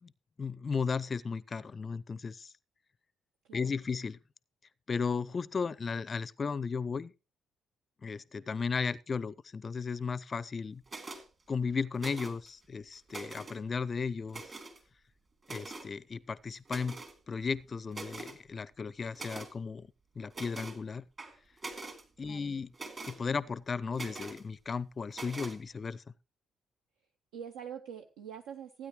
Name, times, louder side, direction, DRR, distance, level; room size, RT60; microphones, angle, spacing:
voice 1, 0.4-2.5 3.5-4.2 4.9-7.1 8.0-10.8 11.5-14.4 15.5-17.0 17.3-19.9 20.2-21.0 22.2-22.7 23.1-26.0, left 5 dB, 35° left, 0.5 m, -35 dB
sound 1, 10.9-11.2 12.0-12.5 12.9-13.6 14.3-14.8 15.4-15.9 16.7-17.2 17.6-17.7 17.9-18.4 19.1-19.5 20.3-20.8 21.2-22.0 22.7-23.2 23.9-24.4 25.1-25.6, right 3 dB, 35° right, 2.7 m, -43 dB
voice 2, 22.2-22.5 27.3-28.9, right 8 dB, 65° right, 0.7 m, -45 dB
16.0 x 9.6 x 3.1 m
figure-of-eight pair, 45°, 0 cm